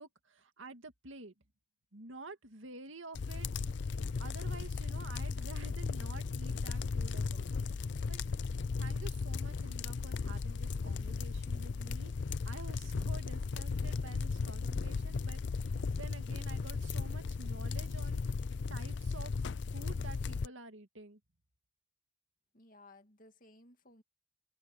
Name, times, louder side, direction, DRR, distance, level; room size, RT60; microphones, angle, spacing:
voice 1, 0.0-1.3 1.9-3.8 4.2-7.5 8.1-8.2 8.8-12.1 12.4-18.2 18.7-19.3 19.7-21.2, right 3 dB, 85° right, 2.2 m, -50 dB
sound 1, 3.1-20.5, left 4 dB, 65° left, 0.5 m, -36 dB
voice 2, 22.5-24.0, left 2 dB, 45° left, 2.1 m, -59 dB
head